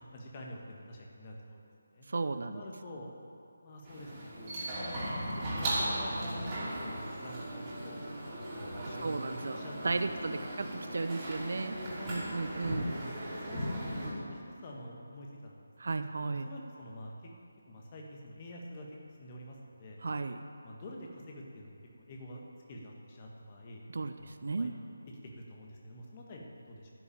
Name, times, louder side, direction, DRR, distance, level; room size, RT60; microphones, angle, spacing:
voice 1, 0.0-2.1 2.4-3.1 3.6-4.9 5.3-8.2 8.5-10.2 11.9-12.6 13.4-17.3 17.7-18.9 19.2-20.0 20.6-22.4 22.7-23.8 24.2-24.7 25.1-26.9, left 1 dB, 25° left, -1 dB, 1.6 m, -48 dB
voice 2, 2.1-2.6 9.0-9.6 9.8-11.8 12.1-12.9 15.8-16.5 20.0-20.4 23.9-24.7, right 3 dB, 50° right, 9 dB, 0.6 m, -34 dB
sound 1, 3.8-14.1, right 1 dB, 20° right, 3.0 m, -37 dB
12.0 x 7.0 x 8.9 m, 2.6 s
figure-of-eight pair, 155°, 0 cm